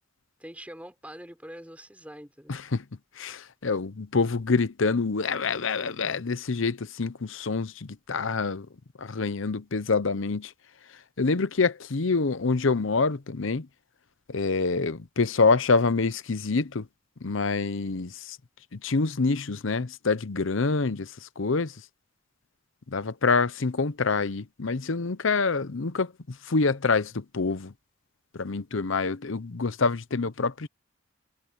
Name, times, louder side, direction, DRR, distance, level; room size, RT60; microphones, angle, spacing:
voice 1, 0.4-2.6, equal, 5° right, 4.1 m, -44 dB
voice 2, 2.5-2.8 3.2-8.7 9.0-10.5 11.2-13.7 14.3-16.9 17.2-18.4 18.7-21.8 22.9-27.7 28.3-30.7, left 4 dB, 70° left, 0.8 m, -26 dB
head